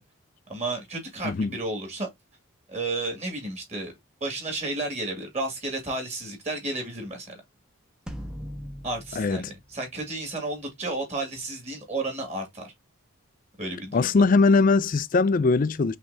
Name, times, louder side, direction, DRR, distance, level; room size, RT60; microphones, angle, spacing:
voice 1, 0.5-2.1 2.7-3.9 4.2-7.4 8.8-12.7 13.6-14.1, right 2 dB, 30° right, 2.2 m, -32 dB
sound 1, 8.1-10.6, equal, 5° right, 0.7 m, -40 dB
voice 2, 9.2-9.5 13.9-16.0, left 4 dB, 40° left, 0.4 m, -21 dB
5.8 x 3.3 x 2.7 m
head